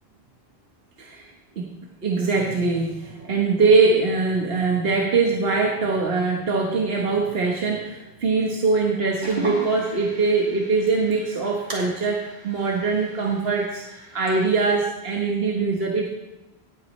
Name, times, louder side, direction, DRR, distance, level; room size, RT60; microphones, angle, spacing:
voice 1, 1.0-1.7 2.0-16.1, right 4 dB, 70° right, -1 dB, 1.4 m, -22 dB
sound 1, 9.2-14.8, right 1 dB, 50° right, 2.5 m, -38 dB
18.0 x 8.4 x 3.2 m, 1.0 s
omnidirectional pair, 1.1 m